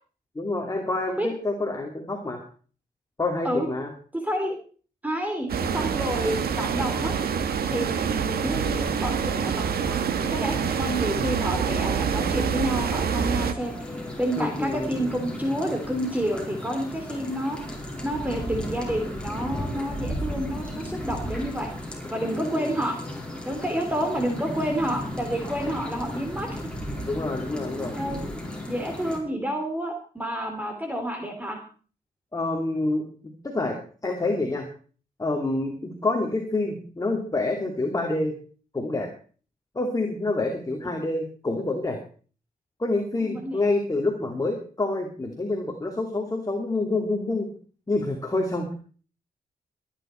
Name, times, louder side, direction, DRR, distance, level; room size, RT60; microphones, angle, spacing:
voice 1, 0.3-2.4 3.2-3.9 14.4-15.1 22.3-22.7 27.1-27.9 32.3-33.8 34.0-34.7 35.2-38.3 38.7-39.1 39.7-42.0 42.8-47.5 47.9-48.7, left 2 dB, 20° left, 2 dB, 2.7 m, -27 dB
voice 2, 4.1-4.5 5.0-7.1 7.7-13.7 14.2-17.6 18.0-21.7 22.1-22.9 23.4-26.5 27.8-28.2 28.7-31.6 43.2-43.7, right 1 dB, 10° right, 4 dB, 3.2 m, -29 dB
sound 1, 5.5-13.5, right 6 dB, 80° right, 1.8 m, -26 dB
sound 2, 13.6-29.2, left 1 dB, 5° left, 4.9 m, -34 dB
22.0 x 10.0 x 4.5 m, 0.41 s
cardioid pair, 95°, 16 cm